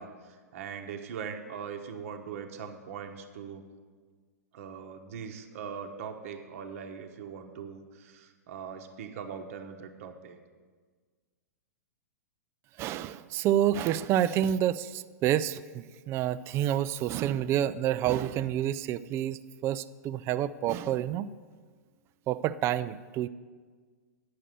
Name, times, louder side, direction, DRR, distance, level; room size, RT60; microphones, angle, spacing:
voice 1, 0.0-3.6 4.5-10.4, right 7 dB, 55° right, 5 dB, 0.9 m, -41 dB
voice 2, 12.8-21.3 22.3-23.3, right 11 dB, 30° right, 15 dB, 0.3 m, -28 dB
9.6 x 6.5 x 6.7 m, 1.5 s
figure-of-eight pair, 105°, 9 cm